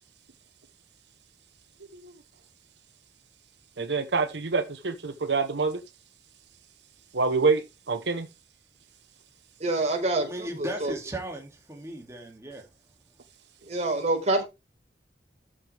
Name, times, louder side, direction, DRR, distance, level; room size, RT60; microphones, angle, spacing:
voice 1, 3.8-5.8 7.1-8.3, right 4 dB, 80° right, 1.0 m, -26 dB
voice 2, 9.6-10.9 13.7-14.4, right 2 dB, 40° right, 4.1 m, -26 dB
voice 3, 10.2-12.6, right 1 dB, 15° right, 2.4 m, -37 dB
13.0 x 6.5 x 3.4 m
head